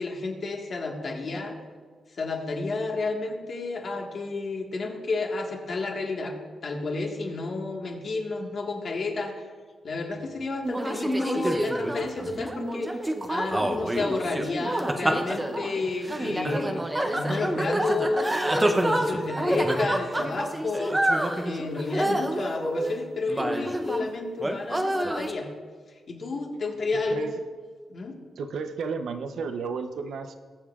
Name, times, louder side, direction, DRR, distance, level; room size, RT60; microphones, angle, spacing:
voice 1, 0.0-1.6 2.2-6.4 6.6-9.3 9.8-13.0 13.3-16.8 17.1-21.0 21.4-25.5 26.1-27.3 27.9-28.2, left 3 dB, 45° left, 1 dB, 1.5 m, -31 dB
sound 1, 10.6-24.1 24.4-25.3, right 1 dB, 10° right, 0.7 m, -27 dB
voice 2, 28.4-30.3, right 5 dB, 70° right, 7 dB, 0.7 m, -32 dB
21.5 x 7.2 x 2.4 m, 1.5 s
wide cardioid pair, 145°, 0 cm